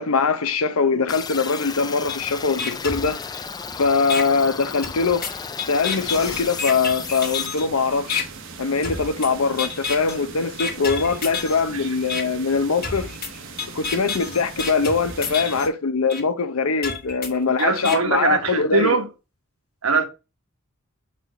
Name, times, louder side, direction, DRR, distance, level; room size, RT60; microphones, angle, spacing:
voice 1, 0.0-3.2 3.8-5.2 5.7-8.3 8.6-13.1 13.7-18.9, left 4 dB, 85° left, 0.8 m, -22 dB
sound 1, 1.1-7.5, left 5 dB, 20° left, 0.3 m, -34 dB
sound 2, 2.1-2.2 2.6-3.6 4.1-4.2 4.8-7.7 8.1-8.2 8.8-9.3 9.6-10.2 10.6-11.6 12.1-12.2 12.8-15.7 16.1-16.2 16.8-18.0, left 5 dB, 45° left, 1.3 m, -29 dB
sound 3, 5.8-15.7, right 4 dB, 60° right, 0.9 m, -40 dB
voice 2, 17.6-19.1 19.8-20.0, right 4 dB, 75° right, 1.2 m, -21 dB
4.7 x 4.3 x 5.0 m
head